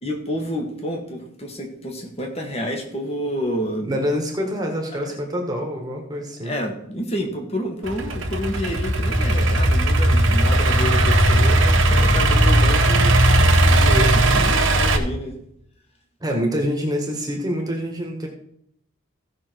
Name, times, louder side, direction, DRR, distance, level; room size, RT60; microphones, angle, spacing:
voice 1, 0.0-3.9 4.9-5.1 6.4-13.2 13.6-15.3, equal, 30° left, 3 dB, 1.8 m, -29 dB
voice 2, 3.8-6.6 16.2-18.3, equal, 20° right, 1 dB, 1.7 m, -26 dB
Idling / Accelerating revving vroom, 7.8-15.0, right 1 dB, 65° right, 1.6 m, -17 dB
16.0 x 6.1 x 4.6 m, 0.73 s
head